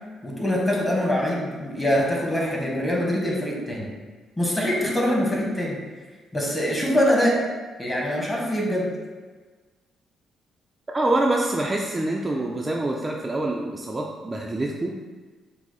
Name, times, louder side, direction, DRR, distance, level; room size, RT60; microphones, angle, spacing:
voice 1, 0.2-3.9 4.4-5.8 6.3-7.4 7.8-8.9, equal, 15° left, -3 dB, 1.3 m, -24 dB
voice 2, 10.9-14.9, right 2 dB, 20° right, -1 dB, 0.4 m, -25 dB
5.9 x 2.0 x 4.1 m, 1.4 s
cardioid pair, 90°, 0 cm